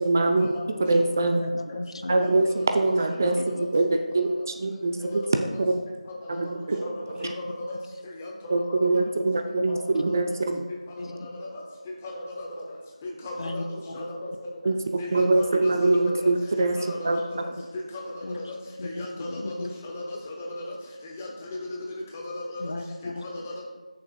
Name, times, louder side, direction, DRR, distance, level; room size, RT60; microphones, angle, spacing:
voice 1, 0.0-0.5 0.8-1.4 2.1-5.2 5.6-5.7 6.4-7.3 8.5-10.7 14.6-16.8 17.0-17.2, right 2 dB, 25° right, 5 dB, 0.4 m, -24 dB
voice 2, 1.2-2.5 3.3-3.4 7.1-7.5 9.7-9.8 11.0-11.3 13.4-14.1 14.7-14.8 17.3-17.4 18.2-18.4 18.8-19.7 22.6-23.2, left 2 dB, 50° left, 6 dB, 0.6 m, -36 dB
voice 3, 3.2-3.5 5.1-5.3 6.3-6.5 6.8-6.9 7.2-7.7 8.0-8.9 9.7-9.8 11.2-11.6 12.0-12.5 13.0-14.3 15.0-16.2 16.8-17.4 17.9-18.5 18.8-20.6 21.0-21.6 22.1-22.4 23.3-23.6, left 1 dB, 15° left, -1 dB, 0.9 m, -36 dB
14.5 x 6.7 x 2.2 m, 1.3 s
figure-of-eight pair, 165°, 4 cm